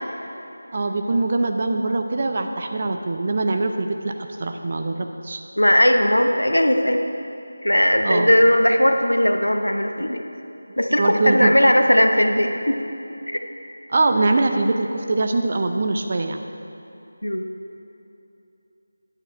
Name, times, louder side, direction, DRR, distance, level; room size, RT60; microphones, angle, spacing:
voice 1, 0.7-5.4 8.0-8.4 11.0-11.5 13.9-16.4, right 2 dB, 40° right, 5 dB, 0.6 m, -22 dB
voice 2, 5.6-7.0 7.6-10.2 10.8-12.8 13.3-13.4 17.2-17.5, equal, 85° left, 5 dB, 0.8 m, -18 dB
9.6 x 7.3 x 4.5 m, 2.9 s
figure-of-eight pair, 165°, 0 cm